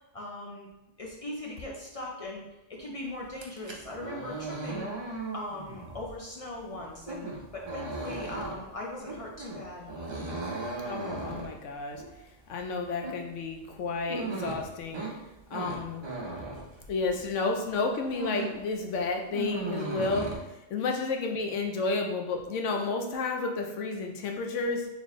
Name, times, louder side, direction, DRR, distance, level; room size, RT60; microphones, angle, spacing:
voice 1, 0.1-0.7 1.0-2.4 2.7-4.9 5.3-7.3 7.5-9.9 15.5-15.8 20.7-21.0, left 1 dB, 45° left, -2 dB, 0.4 m, -40 dB
sound 1, 3.3-17.4 17.7-18.7 18.9-20.4, right 3 dB, 40° right, 0.4 m, -37 dB
voice 2, 10.8-12.0 12.5-15.0 15.5-16.0 16.9-20.3 20.7-24.9, left 3 dB, 80° left, 3 dB, 0.9 m, -31 dB
4.0 x 3.2 x 3.1 m, 0.93 s
omnidirectional pair, 1.3 m